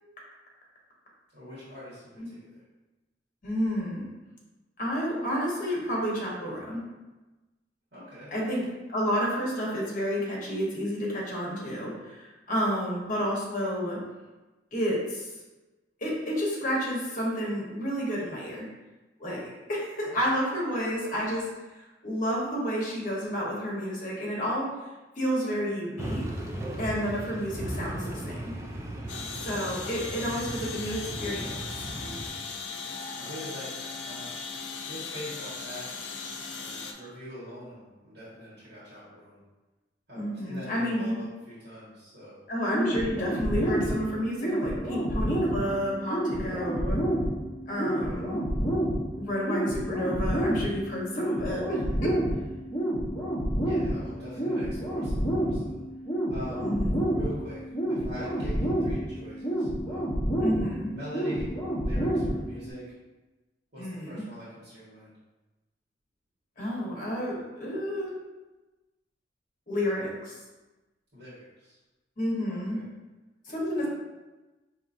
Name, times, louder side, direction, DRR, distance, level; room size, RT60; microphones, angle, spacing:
voice 1, 1.3-2.4 7.9-8.3 12.6-12.7 20.1-20.2 25.4-25.6 33.1-34.3 34.8-35.9 36.5-39.4 40.1-42.4 47.8-48.2 53.6-55.8 56.3-56.7 57.1-60.1 60.9-61.5 61.8-63.0 63.7-65.1 71.1-71.8 72.5-72.8 73.8-73.9, equal, 65° right, -11 dB, 1.4 m, -43 dB
voice 2, 3.4-4.1 4.8-6.8 8.3-8.6 8.9-14.0 14.7-15.3 16.0-18.6 19.2-21.4 21.7-24.7 25.2-26.2 26.8-28.5 29.4-31.5 40.2-41.2 42.5-47.0 47.7-48.4 49.1-52.1 56.6-57.0 60.4-60.9 63.8-64.2 66.6-68.1 69.7-70.3 72.2-72.8 73.5-73.9, equal, 50° left, -4 dB, 1.2 m, -30 dB
sound 1, 26.0-32.3, right 1 dB, 15° right, 0.4 m, -37 dB
sound 2, 29.1-36.9, left 4 dB, 80° left, 0.5 m, -38 dB
sound 3, 42.7-62.7, right 1 dB, 20° left, 1.0 m, -29 dB
4.8 x 2.9 x 2.6 m, 1.1 s
head